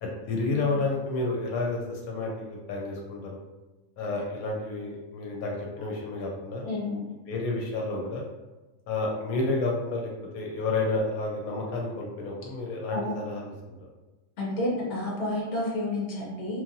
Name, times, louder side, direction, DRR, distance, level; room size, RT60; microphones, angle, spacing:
voice 1, 0.0-3.4 4.0-6.7 7.3-8.2 8.9-13.5, left 3 dB, 85° left, -1 dB, 1.0 m, -30 dB
voice 2, 6.6-7.0 12.9-13.1 14.4-16.6, left 1 dB, 60° left, -4 dB, 1.1 m, -30 dB
3.1 x 2.4 x 2.6 m, 1.1 s
omnidirectional pair, 1.5 m